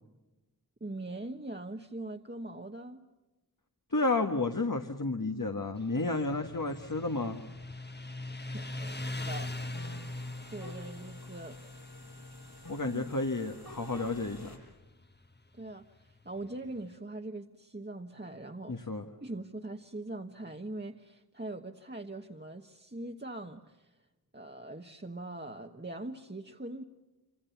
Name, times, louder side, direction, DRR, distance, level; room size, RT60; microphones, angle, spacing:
voice 1, 0.8-3.1 8.5-9.8 10.5-11.6 12.9-13.0 15.5-18.9 19.2-24.0 24.3-26.8, right 2 dB, 25° right, 1.3 m, -42 dB
voice 2, 3.9-7.4 12.7-14.6 18.7-19.0, left 2 dB, 55° left, 1.6 m, -31 dB
Motorcycle, 5.8-16.9, left 2 dB, 25° left, 1.3 m, -42 dB
sound 1, 8.8-14.6, left 1 dB, 80° left, 7.2 m, -51 dB
26.5 x 26.5 x 7.1 m
wide cardioid pair, 40°, 38 cm